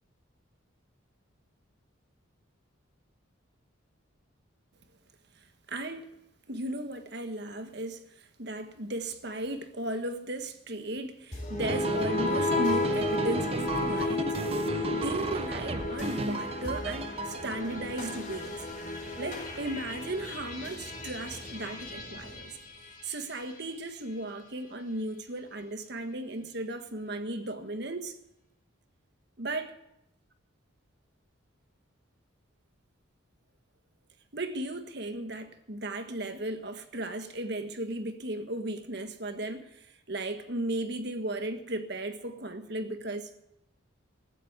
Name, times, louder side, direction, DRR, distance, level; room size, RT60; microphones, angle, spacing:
voice 1, 5.7-6.1 6.5-18.5 19.2-22.6 23.0-28.2 29.4-29.7 34.3-43.5, right 1 dB, 55° right, 1.5 m, -36 dB
sound 1, 11.3-23.6, left 2 dB, 35° left, 4.4 m, -33 dB
sound 2, 11.6-17.5, right 2 dB, 30° right, 0.6 m, -34 dB
15.5 x 11.5 x 8.2 m
head